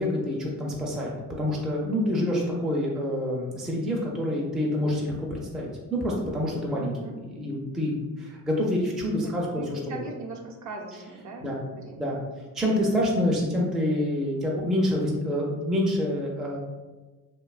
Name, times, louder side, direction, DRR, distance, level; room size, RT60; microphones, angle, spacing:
voice 1, 0.0-6.9 7.2-9.8 11.4-11.6 12.0-12.2 12.5-16.6, left 1 dB, ahead, -3 dB, 0.4 m, -27 dB
voice 2, 6.8-7.2 9.2-12.1, right 3 dB, 50° right, 0 dB, 0.6 m, -40 dB
2.7 x 2.2 x 2.3 m, 1.2 s
cardioid pair, 85°, 38 cm